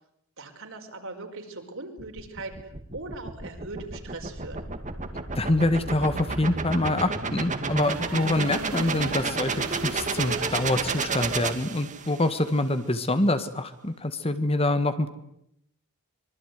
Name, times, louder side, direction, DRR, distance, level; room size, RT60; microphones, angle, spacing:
voice 1, 0.4-2.5 2.9-4.7, right 3 dB, 60° right, 4 dB, 5.2 m, -40 dB
sound 1, 2.0-12.3, right 4 dB, 35° right, 2.3 m, -31 dB
voice 2, 5.3-15.1, left 1 dB, 25° left, 11 dB, 1.7 m, -25 dB
sound 2, 7.8-11.5, right 4 dB, 85° right, 3.1 m, -40 dB
25.0 x 23.5 x 9.6 m, 0.75 s
head